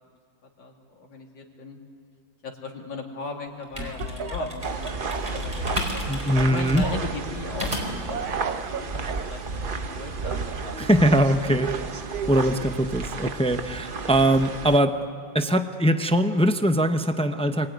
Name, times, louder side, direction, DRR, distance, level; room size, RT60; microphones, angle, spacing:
voice 1, 0.6-1.8 2.4-9.4 9.7-11.4, left 4 dB, 85° left, 0 dB, 3.1 m, -38 dB
sound 1, 3.5-8.1, left 2 dB, 20° right, 4.6 m, -34 dB
Speech / Cough, 3.8-6.0 6.3-7.2 8.1-9.3 10.2-12.5, right 6 dB, 60° right, 1.4 m, -34 dB
sound 2, 4.6-14.8, right 4 dB, 40° right, 0.8 m, -33 dB
voice 2, 6.1-6.9 10.8-11.7 12.3-15.0 15.3-17.7, equal, 10° left, 7 dB, 0.4 m, -21 dB
27.0 x 21.0 x 9.5 m, 2.1 s
omnidirectional pair, 2.0 m